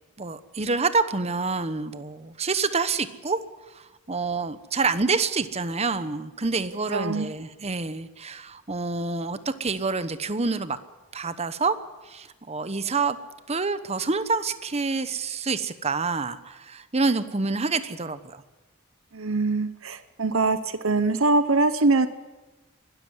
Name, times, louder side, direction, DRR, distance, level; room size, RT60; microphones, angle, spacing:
voice 1, 0.2-3.4 3.7-10.8 11.1-11.8 12.0-13.2 13.5-18.4, right 4 dB, 30° right, 13 dB, 1.0 m, -27 dB
voice 2, 6.9-7.3 19.1-22.1, right 3 dB, 85° right, 12 dB, 1.0 m, -23 dB
22.0 x 13.0 x 9.4 m, 1.2 s
head